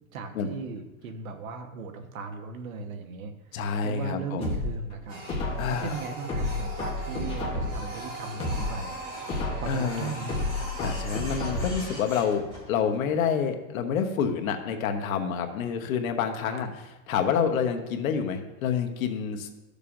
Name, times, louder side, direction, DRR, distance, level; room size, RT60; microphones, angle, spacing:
voice 1, 0.1-5.3 5.7-9.0 9.5-10.4 16.5-16.7, right 4 dB, 75° right, 6 dB, 1.2 m, -38 dB
voice 2, 3.5-4.6 5.6-6.0 9.7-10.1 10.8-16.7 17.1-19.5, left 7 dB, 80° left, 5 dB, 1.1 m, -28 dB
sound 1, 4.4-5.8 6.3-7.9 8.3-9.8 10.3-11.9 12.3-12.4, left 2 dB, 15° left, 1.0 m, -31 dB
Printer, 5.1-12.9, right 1 dB, 15° right, 2.5 m, -40 dB
12.5 x 6.7 x 2.6 m, 1.1 s
supercardioid pair, 180°, 41 cm